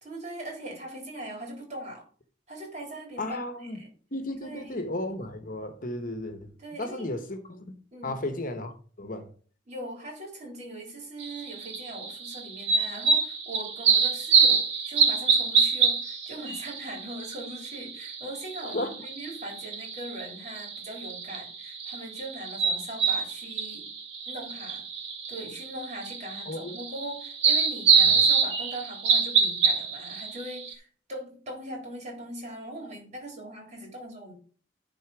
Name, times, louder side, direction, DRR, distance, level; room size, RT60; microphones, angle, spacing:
voice 1, 0.0-2.0 2.5-3.8 4.4-4.8 6.6-7.1 7.9-8.2 9.7-23.8 24.3-24.8 25.3-34.3, right 1 dB, 40° right, 3.8 m, -40 dB
voice 2, 3.2-3.8 4.1-6.5 6.8-9.3 18.6-18.9 26.5-26.8 28.0-28.2, left 1 dB, 45° left, 1.2 m, -34 dB
sound 1, 11.2-30.7, right 5 dB, 85° right, 2.4 m, -26 dB
10.0 x 4.2 x 6.1 m
head